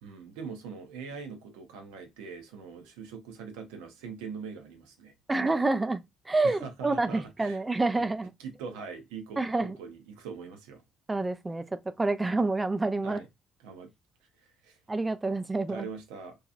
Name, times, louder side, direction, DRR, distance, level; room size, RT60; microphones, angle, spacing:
voice 1, 0.0-5.1 6.4-7.6 8.0-8.1 8.4-10.8 13.0-13.3 13.6-13.9 14.4-14.8 15.7-16.4, right 5 dB, 70° right, 0.6 m, -42 dB
voice 2, 5.3-8.3 9.4-9.8 11.1-13.2 14.9-15.9, right 2 dB, 20° right, 0.4 m, -28 dB
2.8 x 2.3 x 2.4 m
figure-of-eight pair, 50°, 0 cm